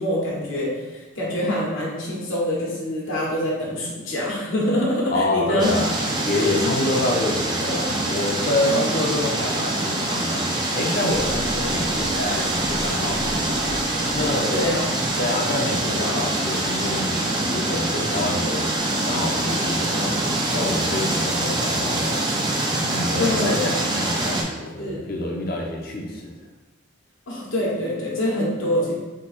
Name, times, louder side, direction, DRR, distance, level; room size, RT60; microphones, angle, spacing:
voice 1, 0.0-5.7 6.3-6.8 8.7-8.9 14.5-15.0 23.2-23.8 24.8-25.0 27.3-28.9, left 1 dB, 75° left, -4 dB, 1.2 m, -25 dB
voice 2, 5.1-6.0 6.3-13.6 14.1-14.7 15.2-18.7 19.1-22.6 22.9-26.3, left 1 dB, 45° left, 0 dB, 0.7 m, -27 dB
sound 1, 5.6-24.4, right 1 dB, 20° right, 0.5 m, -24 dB
sound 2, 11.1-15.2, equal, 90° left, 1.0 m, -37 dB
3.8 x 2.9 x 4.3 m, 1.2 s
head